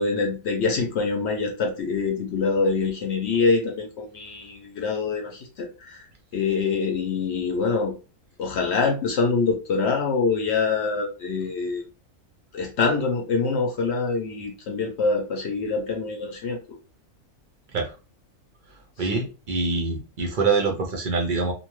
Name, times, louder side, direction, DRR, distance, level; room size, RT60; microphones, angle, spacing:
voice 1, 0.0-6.1 6.3-7.9 8.4-11.9 12.5-16.6 19.0-19.2, left 4 dB, 65° left, 2 dB, 0.7 m, -25 dB
voice 2, 19.0-21.5, right 4 dB, 60° right, 0 dB, 0.5 m, -25 dB
2.6 x 2.2 x 3.0 m, 0.32 s
omnidirectional pair, 1.6 m